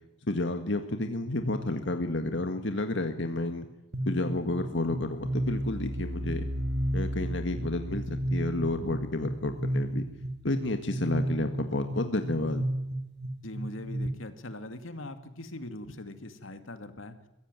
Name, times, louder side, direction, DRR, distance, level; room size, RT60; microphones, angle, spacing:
voice 1, 0.3-3.7 4.1-6.5 6.9-10.0 10.4-12.7, left 2 dB, 65° left, 6 dB, 1.8 m, -31 dB
sound 1, 3.9-14.1, right 1 dB, 55° right, 2.0 m, -33 dB
voice 2, 13.4-17.2, left 1 dB, 85° left, 9 dB, 2.3 m, -41 dB
23.0 x 16.5 x 9.1 m, 0.91 s
head